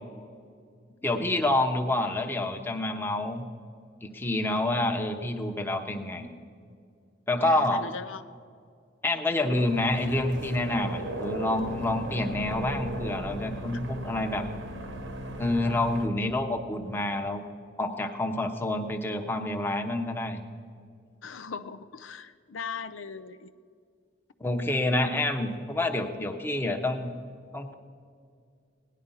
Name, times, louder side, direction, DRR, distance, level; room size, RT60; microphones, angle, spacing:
voice 1, 1.0-3.4 4.0-6.3 7.3-7.9 9.0-14.5 15.4-17.4 17.8-20.4 24.4-27.1 27.5-27.7, left 2 dB, 10° left, 4 dB, 0.9 m, -28 dB
voice 2, 7.4-8.2 21.2-23.5, left 5 dB, 90° left, 11 dB, 0.6 m, -39 dB
sound 1, 9.5-16.1, right 1 dB, 75° right, 1.2 m, -36 dB
17.5 x 10.5 x 5.5 m, 2.2 s
head